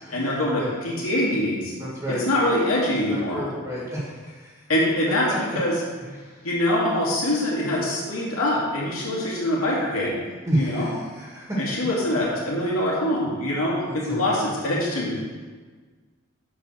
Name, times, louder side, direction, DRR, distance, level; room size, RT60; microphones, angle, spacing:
voice 1, 0.1-1.7 2.1-3.4 4.7-5.7 6.4-10.2 10.5-10.9 11.6-15.2, left 1 dB, 85° left, -5 dB, 2.6 m, -24 dB
voice 2, 1.8-2.2 3.1-4.5 6.0-6.1 10.5-11.9 13.9-14.5, equal, 15° right, -6 dB, 1.7 m, -30 dB
7.5 x 5.3 x 6.4 m, 1.5 s
head